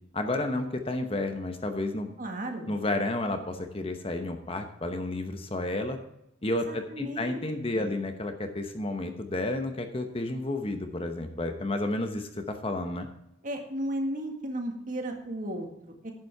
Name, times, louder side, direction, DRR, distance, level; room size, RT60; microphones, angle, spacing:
voice 1, 0.1-2.1 2.7-6.0 6.4-13.1, left 2 dB, 30° left, 6 dB, 0.9 m, -31 dB
voice 2, 2.2-2.8 6.7-7.4 7.7-7.9 13.4-16.1, right 1 dB, 40° right, 3 dB, 1.8 m, -34 dB
10.5 x 8.2 x 4.7 m, 0.81 s
head